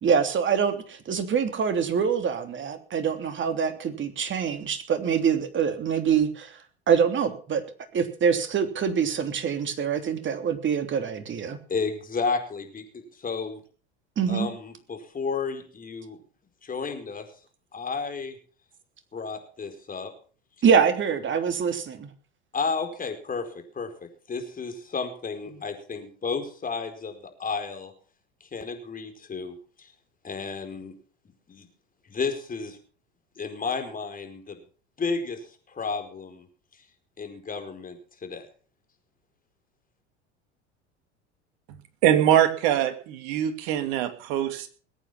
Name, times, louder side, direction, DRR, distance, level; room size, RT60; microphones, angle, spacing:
voice 1, 0.0-6.6 6.9-7.6 7.9-11.6 14.2-14.5 20.6-22.1, right 7 dB, 35° right, 8 dB, 3.1 m, -25 dB
voice 2, 11.7-13.6 14.3-16.2 16.6-17.3 17.7-18.4 19.1-20.1 22.5-27.9 28.4-29.9 30.2-30.9 31.5-31.7 32.1-32.8 33.4-34.6 35.0-36.5 37.2-38.5, left 4 dB, 25° left, 6 dB, 4.9 m, -32 dB
voice 3, 42.0-44.7, right 11 dB, 60° right, 9 dB, 2.7 m, -23 dB
20.5 x 9.1 x 5.9 m, 0.41 s
hypercardioid pair, 75°, 34 cm